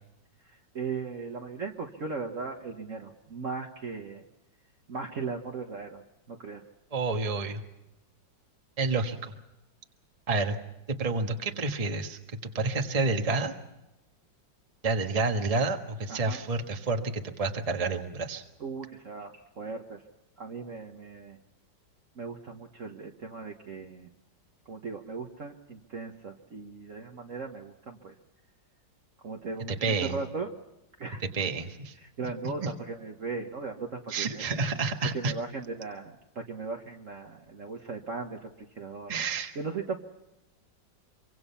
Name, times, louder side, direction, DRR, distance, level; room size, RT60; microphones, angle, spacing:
voice 1, 0.4-4.2 4.9-6.6 16.1-16.4 18.6-20.0 20.4-21.4 22.1-24.1 24.7-28.1 29.2-30.5 31.0-31.2 32.0-34.5 35.1-39.2 39.5-40.0, right 4 dB, 45° right, 2 dB, 1.6 m, -38 dB
voice 2, 6.9-7.6 8.8-9.3 10.3-10.6 10.9-13.5 14.8-18.4 29.8-30.1 31.3-31.9 32.6-32.7 34.1-35.3 39.1-39.5, right 3 dB, 20° right, 5 dB, 1.4 m, -29 dB
25.0 x 24.5 x 5.7 m, 0.96 s
omnidirectional pair, 2.0 m